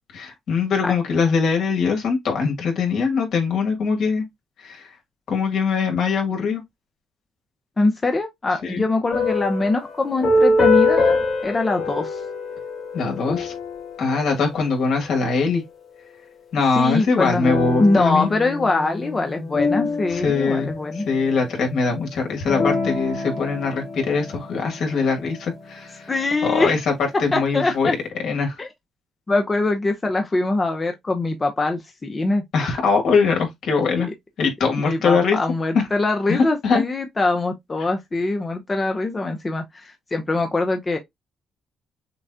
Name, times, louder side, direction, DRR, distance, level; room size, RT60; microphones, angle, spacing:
voice 1, 0.1-4.2 4.6-4.9 5.3-6.6 8.6-8.8 12.9-13.5 14.0-15.6 16.5-18.3 20.1-26.1 26.5-26.8 27.2-27.9 28.2-28.6 32.5-34.1 34.4-35.4 35.7-35.9 36.3-36.8, left 4 dB, 70° left, 2.0 m, -22 dB
voice 2, 7.8-12.2 16.8-17.5 17.8-21.1 26.1-26.8 27.1-28.0 28.6-28.7 29.3-32.4 34.0-34.1 34.9-41.0, left 2 dB, 25° left, 0.8 m, -23 dB
sound 1, 9.1-15.1 17.4-21.2 22.5-25.1, left 3 dB, 50° left, 2.1 m, -24 dB
6.8 x 2.4 x 2.7 m
cardioid pair, 90°, 0 cm